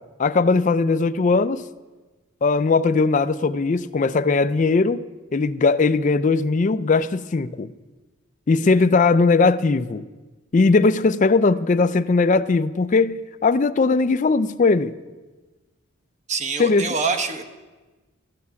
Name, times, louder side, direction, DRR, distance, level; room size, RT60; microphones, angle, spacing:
voice 1, 0.2-1.6 2.4-7.7 8.5-10.1 10.5-14.9 16.6-16.9, left 4 dB, 35° left, 0.4 m, -19 dB
voice 2, 16.3-17.4, right 4 dB, 35° right, 1.0 m, -25 dB
13.5 x 9.6 x 6.9 m
head